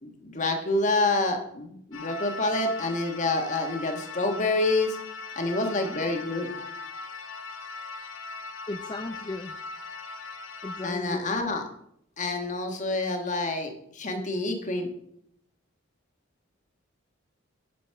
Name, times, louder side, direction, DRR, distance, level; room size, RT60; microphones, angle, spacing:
voice 1, 0.0-5.0 5.3-6.5 10.8-11.6 12.2-14.9, left 2 dB, 40° left, 4 dB, 1.5 m, -27 dB
sound 1, 1.9-10.9, left 4 dB, 70° left, 1.1 m, -39 dB
voice 2, 8.7-9.6 10.6-11.4, left 2 dB, 20° left, 6 dB, 0.5 m, -36 dB
11.0 x 5.2 x 5.7 m, 0.72 s
head